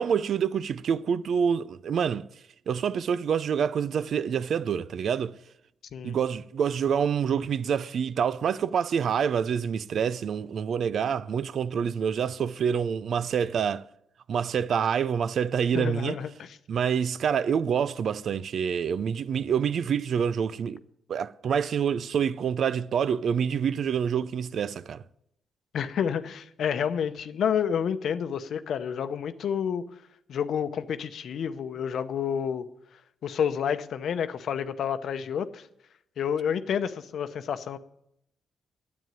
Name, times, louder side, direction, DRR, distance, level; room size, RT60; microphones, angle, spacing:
voice 1, 0.0-2.3 2.7-5.3 6.0-13.8 14.3-16.2 16.7-20.8 21.1-25.0, right 7 dB, 65° right, 0.5 m, -27 dB
voice 2, 15.7-16.6 25.7-29.8 30.3-32.7 33.2-35.7 36.2-37.8, left 8 dB, 70° left, 0.8 m, -29 dB
9.5 x 8.7 x 9.0 m
cardioid pair, 70°, 0 cm